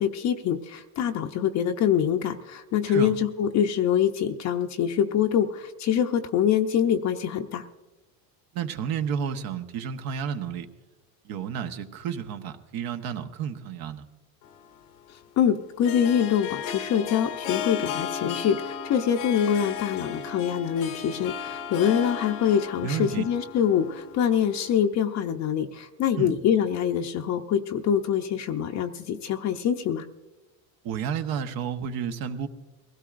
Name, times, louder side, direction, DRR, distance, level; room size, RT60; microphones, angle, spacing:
voice 1, 0.0-7.7 15.4-30.1, left 8 dB, 45° left, 4 dB, 0.7 m, -25 dB
voice 2, 8.5-10.7 11.2-14.0 22.8-23.2 26.2-26.4 30.8-32.5, right 7 dB, 60° right, 8 dB, 1.2 m, -31 dB
Harp, 14.4-24.9, left 8 dB, 70° left, 1.0 m, -35 dB
22.5 x 16.5 x 2.5 m, 1.1 s
supercardioid pair, 110°, 41 cm